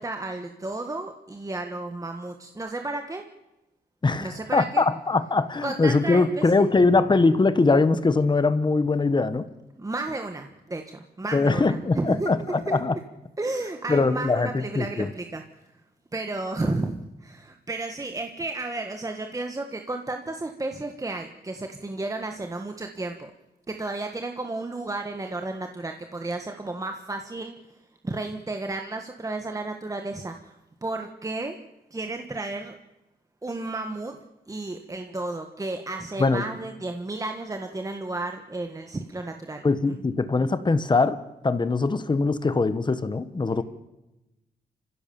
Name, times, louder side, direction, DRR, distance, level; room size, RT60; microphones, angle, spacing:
voice 1, 0.0-3.3 4.2-4.8 5.6-6.7 9.8-12.3 12.7-12.8 13.4-15.4 16.1-23.3 23.7-27.6 28.0-31.6 31.9-32.7 33.4-34.2 34.5-40.0, right 2 dB, 20° right, 5 dB, 1.5 m, -32 dB
voice 2, 4.0-9.5 11.3-12.9 13.9-15.1 36.2-36.4 39.6-43.6, left 3 dB, 30° left, 12 dB, 1.3 m, -22 dB
30.0 x 16.0 x 7.1 m, 0.98 s
wide cardioid pair, 130°, 17 cm